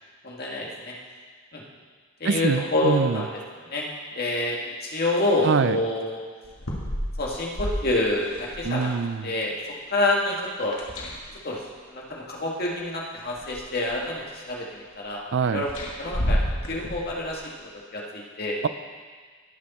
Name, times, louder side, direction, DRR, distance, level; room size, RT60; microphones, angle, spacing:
voice 1, 0.2-0.9 1.5-1.6 2.2-3.9 4.1-6.2 7.2-8.9 9.2-9.5 9.9-10.8 11.4-11.6 11.9-15.7 16.0-16.4 16.7-17.4 17.9-18.6, left 2 dB, 50° left, -2 dB, 1.9 m, -27 dB
voice 2, 2.2-3.2 5.4-5.8 8.6-9.3 15.3-15.6, right 5 dB, 60° right, 12 dB, 0.4 m, -24 dB
sound 1, 6.4-8.9 10.6-11.6 12.7-12.8 13.3-14.1 15.6-17.4, equal, 85° left, 2.1 m, -30 dB
18.5 x 6.4 x 4.2 m, 1.5 s
head